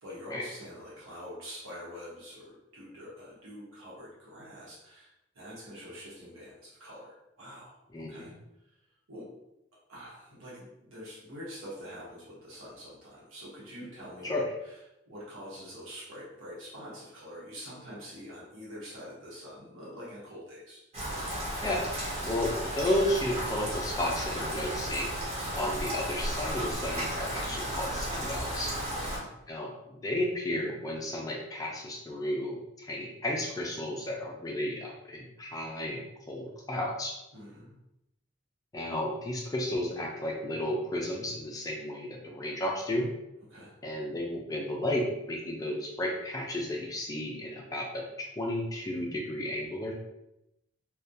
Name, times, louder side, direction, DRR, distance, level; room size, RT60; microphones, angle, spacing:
voice 1, 0.0-8.4 8.6-8.8 9.1-9.3 9.9-14.8 15.1-20.8 27.4-27.5 28.8-29.4 37.3-37.8 43.5-43.7, equal, 85° right, -7 dB, 0.9 m, -46 dB
voice 2, 7.9-8.3 14.2-14.5 21.6-21.9 22.2-28.7 29.5-37.1 38.7-43.1 43.8-48.0 48.4-49.9, left 1 dB, 15° left, -1 dB, 0.3 m, -33 dB
Rain, 20.9-29.2, equal, 30° right, 0.6 m, -34 dB
2.2 x 2.1 x 2.6 m, 0.88 s
head